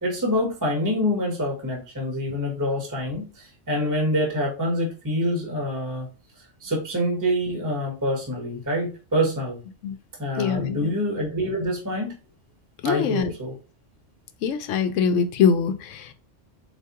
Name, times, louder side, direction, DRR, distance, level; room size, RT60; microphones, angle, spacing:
voice 1, 0.0-6.1 6.6-9.6 10.2-12.2 12.8-13.5, equal, 15° right, 0 dB, 1.0 m, -26 dB
voice 2, 10.4-10.9 12.8-13.3 14.4-16.1, left 6 dB, 80° left, 10 dB, 0.9 m, -23 dB
4.1 x 3.5 x 2.8 m, 0.34 s
omnidirectional pair, 1.3 m